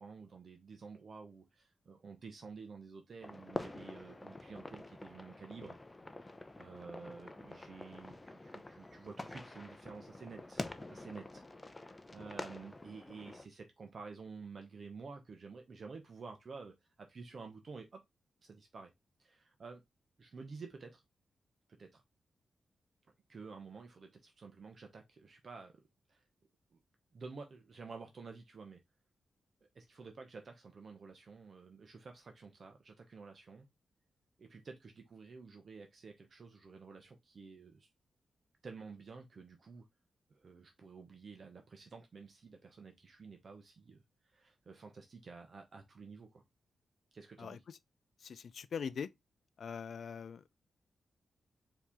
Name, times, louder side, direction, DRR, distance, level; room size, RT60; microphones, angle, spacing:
voice 1, 0.0-5.8 6.6-18.0 18.4-18.9 19.2-19.8 20.2-21.0 21.7-22.0 23.3-25.8 26.1-26.2 26.7-26.8 27.1-28.8 29.7-33.7 34.4-37.9 38.6-39.9 40.3-44.0 44.3-46.4 47.1-47.6, right 4 dB, 55° right, 0.8 m, -51 dB
sound 1, 3.2-13.5, left 2 dB, 20° left, 0.6 m, -47 dB
voice 2, 47.4-47.8 48.2-49.1 49.6-50.6, left 6 dB, 70° left, 0.4 m, -42 dB
4.7 x 2.9 x 3.4 m
cardioid pair, 85°, 0 cm